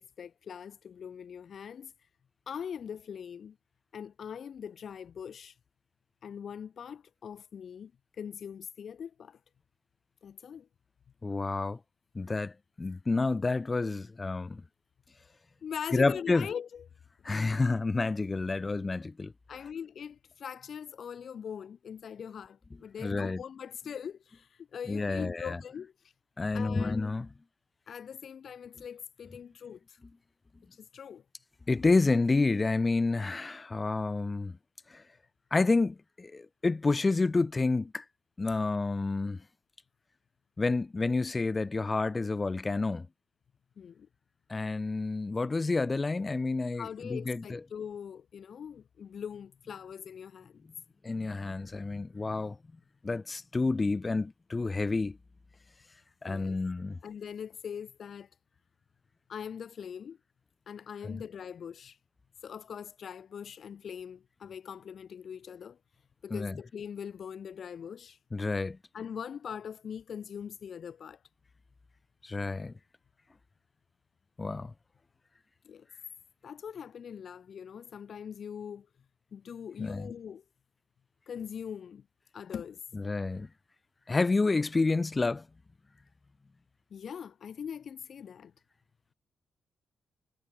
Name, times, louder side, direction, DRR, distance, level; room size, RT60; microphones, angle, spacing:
voice 1, 0.0-1.9 2.5-3.6 3.9-5.5 6.2-7.9 8.2-9.4 10.2-10.7 15.6-16.8 19.5-25.9 26.5-27.1 27.9-30.0 30.7-31.2 43.8-44.1 46.8-50.6 56.2-56.6 57.0-58.3 59.3-60.2 60.7-62.0 62.4-65.8 66.2-68.2 68.9-71.2 75.6-75.9 76.4-78.9 79.3-80.4 81.3-82.1 82.3-82.8 86.9-88.5, left 7 dB, 50° left, 1.9 m, -42 dB
voice 2, 11.2-11.8 12.1-14.6 15.9-16.5 17.2-19.3 23.0-23.4 24.9-25.6 26.4-27.3 31.7-34.6 34.9-35.0 35.5-38.0 38.4-39.4 40.6-43.1 44.5-47.6 51.0-52.6 53.0-55.2 56.2-57.0 61.0-61.2 66.3-66.5 68.3-68.8 72.2-72.7 74.4-74.7 79.8-80.1 82.9-83.5 84.1-85.5, left 3 dB, 20° left, 2.8 m, -29 dB
wide cardioid pair, 150°, 0 cm